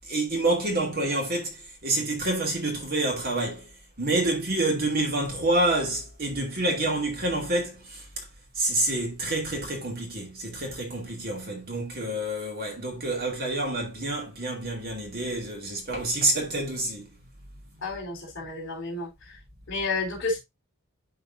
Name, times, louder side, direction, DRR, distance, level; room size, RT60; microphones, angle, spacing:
voice 1, 0.1-3.7 4.0-8.2 8.6-17.1, right 2 dB, 45° right, 2.4 m, -28 dB
voice 2, 17.8-19.4 19.7-20.4, left 3 dB, 55° left, 3.8 m, -31 dB
11.5 x 4.0 x 2.6 m
head